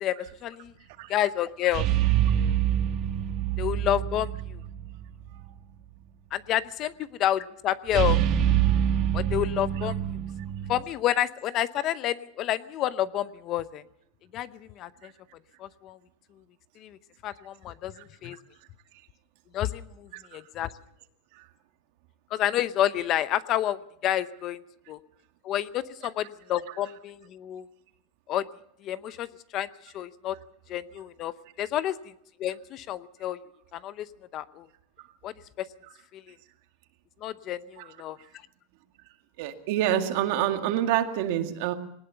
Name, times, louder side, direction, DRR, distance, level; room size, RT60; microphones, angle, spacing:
voice 1, 0.0-0.7 1.1-1.9 3.6-4.6 6.3-6.9 7.2-8.2 9.1-10.0 10.7-13.8 14.3-14.5 14.8-14.9 15.6-16.0 16.8-17.0 17.2-17.9 18.2-18.4 19.5-20.7 22.3-24.6 24.9-25.0 25.4-27.6 28.3-28.4 28.8-29.3 29.5-29.7 29.9-30.4 30.7-31.9 32.4-33.4 33.7-34.1 34.3-34.7 35.2-35.7 37.2-38.2, left 12 dB, 35° left, 15 dB, 0.7 m, -29 dB
sound 1, 1.7-5.0 5.3-5.4 7.9-10.8, right 10 dB, 40° right, 2.2 m, -25 dB
voice 2, 39.4-41.7, right 11 dB, 60° right, 6 dB, 2.1 m, -26 dB
20.0 x 19.0 x 6.9 m, 0.72 s
supercardioid pair, 160°, 0 cm